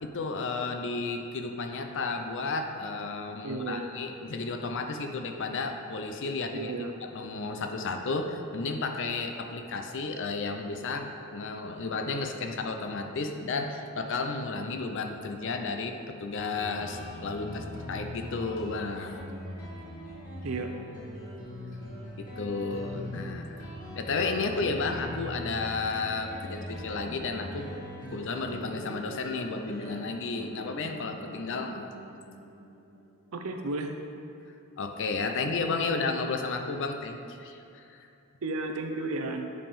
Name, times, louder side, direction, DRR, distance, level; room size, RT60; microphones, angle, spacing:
voice 1, 0.0-6.7 7.0-19.3 22.2-23.7 24.0-27.7 28.1-31.9 34.8-38.1, left 3 dB, 55° left, 5 dB, 0.6 m, -33 dB
voice 2, 3.4-3.9 6.5-6.9 20.4-20.7 33.3-33.9 35.9-36.0 38.4-39.5, right 3 dB, 65° right, 5 dB, 0.6 m, -33 dB
Guitar, 16.3-33.5, left 1 dB, 40° left, 1.7 m, -41 dB
9.6 x 5.2 x 3.6 m, 2.6 s
head